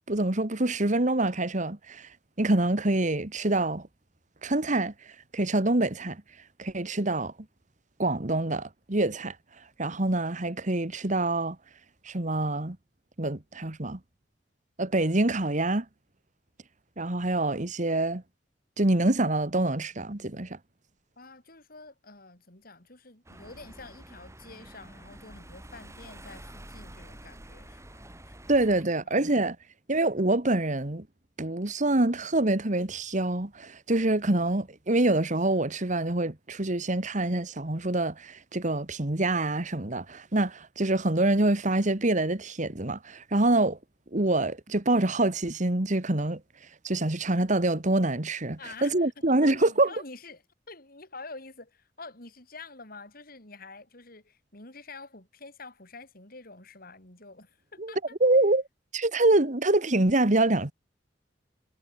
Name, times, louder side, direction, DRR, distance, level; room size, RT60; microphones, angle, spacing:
voice 1, 0.1-2.1 2.4-3.9 4.4-4.9 5.3-6.2 6.6-7.3 8.0-9.4 9.8-11.6 12.1-12.8 13.2-14.0 14.8-15.9 17.0-18.2 18.8-20.6 28.5-29.6 29.9-31.1 31.4-43.8 44.1-46.4 46.8-49.9 57.8-57.9 58.2-58.6 58.9-60.7, right 2 dB, 45° right, 1.8 m, -26 dB
voice 2, 21.2-28.6 28.8-29.2 48.6-58.2, left 3 dB, 55° left, 6.8 m, -47 dB
sound 1, 23.3-28.8, right 1 dB, 15° right, 6.0 m, -48 dB
head